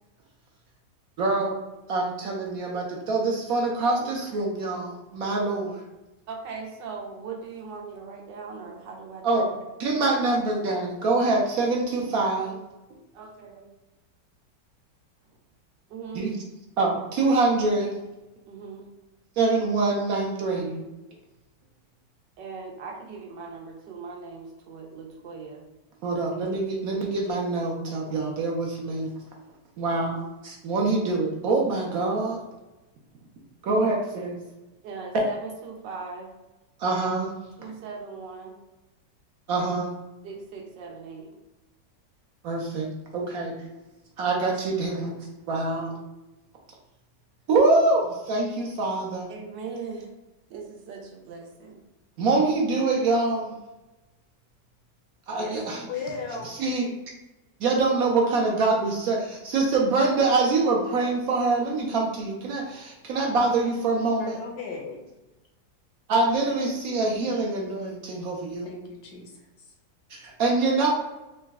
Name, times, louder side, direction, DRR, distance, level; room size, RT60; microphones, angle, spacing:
voice 1, 1.2-1.6 1.9-5.8 9.2-9.5 9.8-12.6 16.1-16.3 16.8-17.9 19.4-20.8 26.0-29.1 29.8-32.4 33.6-34.4 36.8-37.3 39.5-39.9 42.4-42.9 43.1-43.5 44.2-45.1 45.5-46.0 47.5-49.3 52.2-53.5 55.3-55.9 56.3-56.9 57.6-64.4 66.1-68.7 70.1-70.9, right 3 dB, 65° right, -1 dB, 0.9 m, -25 dB
voice 2, 6.3-9.6 13.1-13.7 15.9-16.3 18.5-18.9 22.4-25.7 34.8-36.3 37.6-38.6 40.2-41.3 49.3-50.1 50.5-51.8, right 5 dB, 85° right, 1 dB, 1.4 m, -39 dB
voice 3, 55.3-56.5 64.2-65.0 68.6-69.3, left 5 dB, 70° left, 0 dB, 1.2 m, -36 dB
3.9 x 2.2 x 3.4 m, 1.0 s
omnidirectional pair, 1.9 m